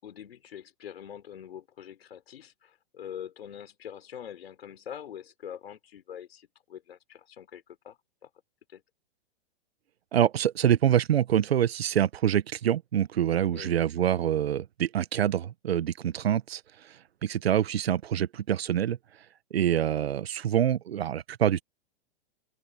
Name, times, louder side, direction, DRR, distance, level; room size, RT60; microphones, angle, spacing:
voice 1, 0.0-8.3 8.7-8.8 13.5-13.8, left 9 dB, 80° left, 4.5 m, -44 dB
voice 2, 10.1-16.6 17.2-19.0 19.5-21.6, right 10 dB, 85° right, 1.1 m, -25 dB
open air
hypercardioid pair, 130°, 30 cm